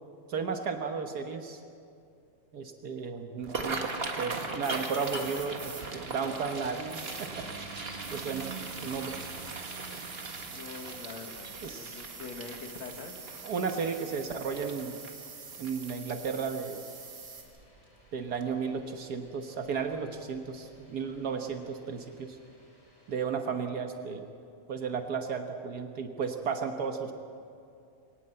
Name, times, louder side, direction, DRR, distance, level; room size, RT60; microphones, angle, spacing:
voice 1, 0.3-1.6 2.5-7.4 8.1-8.5 8.8-9.1 11.6-12.0 13.4-15.0 15.6-16.8 18.1-22.4 23.1-24.3 24.7-27.1, right 5 dB, 85° right, 5 dB, 0.8 m, -34 dB
sound 1, 3.4-16.5 17.0-17.2 17.6-18.0 18.4-18.6 19.8-20.0 20.3-20.5 20.9-21.0, right 3 dB, 40° right, 0.9 m, -39 dB
sound 2, 4.6-17.4, right 5 dB, 70° right, 4.7 m, -46 dB
capemay engineroom, 5.3-23.2, equal, 85° left, 9.5 m, -60 dB
voice 2, 10.5-11.5 11.7-13.2, left 5 dB, 65° left, 4 dB, 3.0 m, -44 dB
24.0 x 18.0 x 7.8 m, 2.5 s
omnidirectional pair, 3.5 m